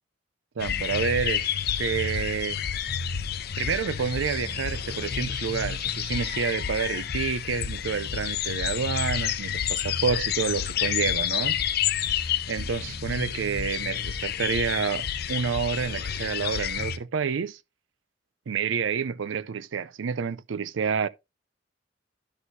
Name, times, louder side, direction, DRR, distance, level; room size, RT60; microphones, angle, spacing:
sound 1, 0.6-17.0, left 9 dB, 55° left, 0.6 m, -29 dB
voice 1, 0.6-1.5 1.8-2.6 3.6-11.6 12.5-17.6 18.5-21.1, right 6 dB, 85° right, 0.5 m, -29 dB
11.5 x 6.3 x 2.7 m
head